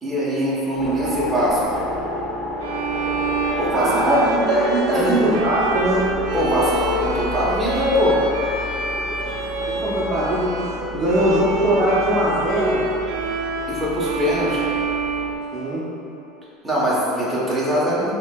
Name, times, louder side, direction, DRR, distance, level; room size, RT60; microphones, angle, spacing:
voice 1, 0.0-1.6 3.6-4.2 4.9-5.1 6.3-8.2 13.7-14.6 16.6-18.1, equal, 5° right, -8 dB, 0.9 m, -22 dB
sound 1, 0.7-15.3, left 1 dB, 10° left, 1.2 m, -31 dB
Bowed string instrument, 2.6-16.1, right 3 dB, 85° right, 0.4 m, -27 dB
voice 2, 3.7-6.1 9.2-13.0 15.5-15.8, right 1 dB, 30° right, -9 dB, 0.6 m, -21 dB
6.8 x 2.8 x 2.2 m, 2.8 s
cardioid pair, 160°, 0 cm